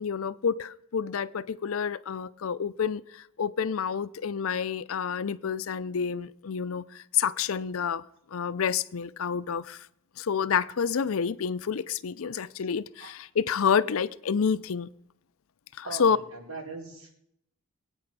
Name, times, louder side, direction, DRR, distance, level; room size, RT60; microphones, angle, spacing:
voice 1, 0.0-8.0 8.3-9.9 10.2-14.9 15.8-16.2, left 7 dB, 70° left, 0.5 m, -29 dB
voice 2, 15.8-17.1, right 3 dB, 90° right, 4.6 m, -40 dB
21.5 x 8.9 x 6.0 m
head